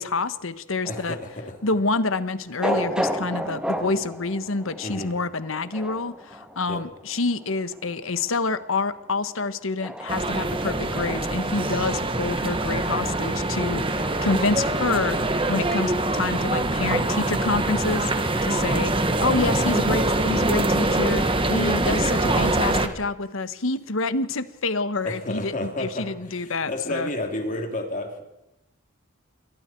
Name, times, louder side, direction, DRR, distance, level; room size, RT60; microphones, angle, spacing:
voice 1, 0.0-1.2 1.6-15.2 15.5-18.9 19.2-27.1, left 3 dB, 70° left, 13 dB, 1.3 m, -27 dB
sound 1, 0.8-17.3, equal, 5° right, 1.7 m, -35 dB
voice 2, 0.9-1.6 4.8-5.1 6.7-6.8 22.1-22.5 25.0-28.2, left 1 dB, 40° left, 3 dB, 3.4 m, -31 dB
sound 2, 10.1-22.9, right 2 dB, 25° right, 1.5 m, -24 dB
28.0 x 23.0 x 4.6 m, 0.87 s
head